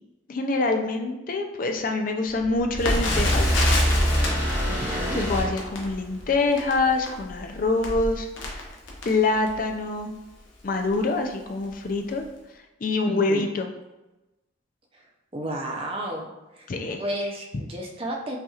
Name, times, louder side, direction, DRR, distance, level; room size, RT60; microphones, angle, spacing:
voice 1, 0.3-3.6 4.7-8.7 9.1-10.1 10.6-12.2 12.8-13.7 16.7-17.0, left 3 dB, 45° left, 4 dB, 0.4 m, -25 dB
sound 1, 2.4-6.2, equal, 15° left, 1.2 m, -25 dB
Crackle, 2.8-9.7 10.4-10.5 10.8-11.0 11.6-11.8 12.1-12.2, left 2 dB, 80° left, 0.8 m, -30 dB
voice 2, 4.7-5.2 13.1-13.5 15.3-16.3 16.6-16.7 17.0-18.4, right 1 dB, 30° right, 1 dB, 0.5 m, -32 dB
5.6 x 2.8 x 2.4 m, 1.0 s
head